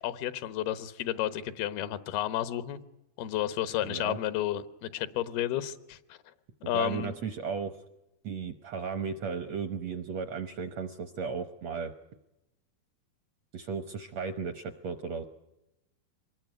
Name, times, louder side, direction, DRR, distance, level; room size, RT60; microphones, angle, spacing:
voice 1, 0.0-2.8 3.2-6.2 6.7-7.1, left 12 dB, 85° left, 13 dB, 3.1 m, -32 dB
voice 2, 3.8-4.2 6.7-7.7 8.2-11.9 13.5-15.2, right 5 dB, 70° right, 10 dB, 1.6 m, -35 dB
25.0 x 20.5 x 9.3 m, 0.92 s
omnidirectional pair, 4.3 m